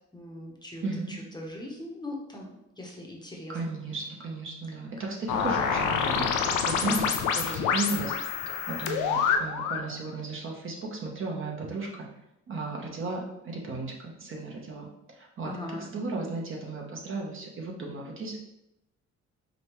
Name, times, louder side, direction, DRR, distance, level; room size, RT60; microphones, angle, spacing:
voice 1, 0.1-3.8 6.8-7.3 15.4-15.8, left 1 dB, 15° left, -1 dB, 0.8 m, -40 dB
voice 2, 0.8-1.2 3.5-6.3 6.6-8.2 8.5-12.1 12.5-18.4, right 3 dB, 45° right, -1 dB, 0.9 m, -35 dB
sound 1, 5.3-9.9, left 6 dB, 90° left, 0.5 m, -27 dB
5.1 x 2.3 x 3.0 m, 0.85 s
cardioid pair, 90°, 30 cm